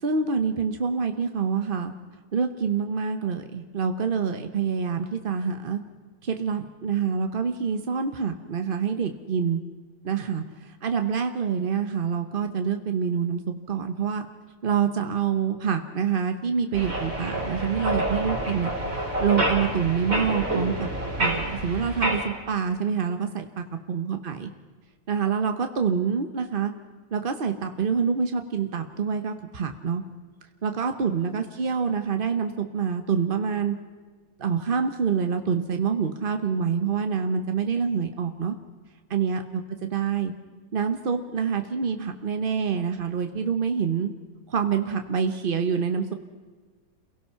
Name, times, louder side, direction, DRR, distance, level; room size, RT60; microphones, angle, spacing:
voice 1, 0.0-1.9 2.3-5.8 6.2-9.6 10.0-10.4 10.8-14.2 14.6-18.7 19.2-20.9 21.2-24.5 25.1-26.7 27.1-30.0 30.6-33.7 34.4-38.5 39.1-39.6 39.9-40.3 40.7-44.1 44.5-46.1, right 6 dB, 60° right, 7 dB, 0.5 m, -26 dB
sound 1, 16.7-22.2, right 1 dB, 35° right, 4.5 m, -28 dB
28.0 x 17.5 x 5.8 m, 1.4 s
omnidirectional pair, 2.3 m